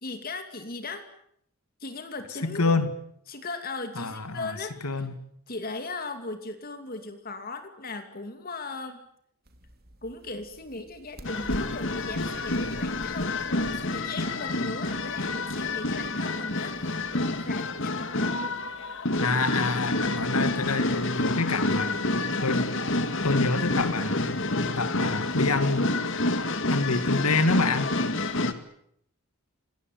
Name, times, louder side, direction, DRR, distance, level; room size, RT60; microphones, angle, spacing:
voice 1, 0.0-1.0 1.8-2.8 3.3-5.0 5.5-9.0 10.0-18.5, left 3 dB, 40° left, 7 dB, 2.6 m, -38 dB
voice 2, 2.4-2.9 4.0-4.6 4.8-5.1 19.2-22.0 22.4-22.6 23.2-24.4 24.8-25.9 26.7-27.9, left 3 dB, 85° left, 11 dB, 2.5 m, -27 dB
sound 1, 9.4-16.1, equal, 45° right, 2.8 m, -46 dB
sound 2, 11.2-28.5, left 2 dB, 55° left, 2.1 m, -28 dB
27.0 x 20.0 x 9.4 m, 0.70 s
head